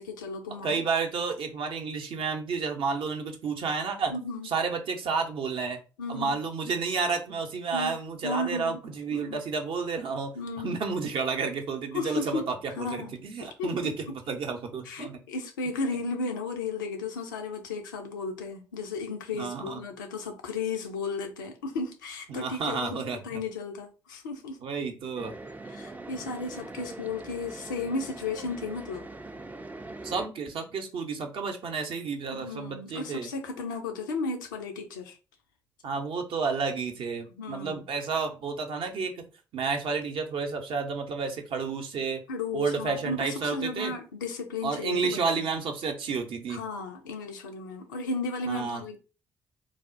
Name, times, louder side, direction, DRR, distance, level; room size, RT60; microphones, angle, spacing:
voice 1, 0.0-0.8 4.1-4.5 6.0-6.4 7.7-7.9 8.2-8.8 9.1-9.4 10.4-10.8 11.9-12.4 12.8-13.9 14.9-24.6 25.7-29.0 32.3-35.2 37.4-37.8 42.3-45.4 46.5-49.0, left 3 dB, 85° left, 0.4 m, -34 dB
voice 2, 0.6-4.1 4.4-5.8 6.1-15.2 19.3-19.8 22.3-23.4 24.6-25.3 30.0-33.3 35.8-39.2 39.5-42.2 42.5-43.9 44.6-46.6 48.5-48.8, right 5 dB, 55° right, 0.6 m, -31 dB
sound 1, 25.2-30.3, right 2 dB, 15° right, 0.3 m, -42 dB
3.3 x 2.1 x 2.5 m
figure-of-eight pair, 45°, 10 cm